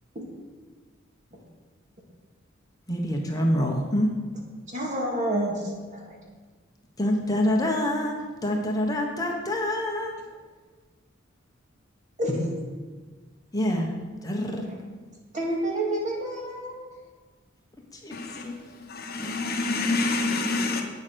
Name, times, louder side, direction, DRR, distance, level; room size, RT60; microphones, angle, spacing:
voice 1, 2.9-4.1 7.0-8.1 8.4-10.1 13.5-13.9 14.2-14.6 18.0-18.5 19.2-19.6, left 1 dB, 20° left, 1.2 m, -26 dB
voice 2, 4.7-6.2 12.2-12.5 14.7-14.8 15.3-16.9, right 1 dB, 40° right, 2.1 m, -29 dB
voice 3, 18.1-20.8, left 3 dB, 50° left, 1.2 m, -28 dB
9.1 x 7.2 x 6.3 m
head